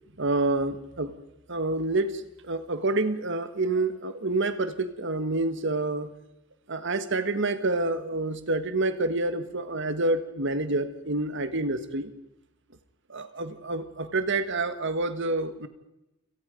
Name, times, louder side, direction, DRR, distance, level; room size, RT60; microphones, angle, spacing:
voice 1, 0.2-1.2 1.5-6.1 6.7-12.1 13.1-15.7, right 2 dB, 60° right, 11 dB, 1.6 m, -28 dB
29.5 x 17.5 x 5.3 m, 0.93 s
head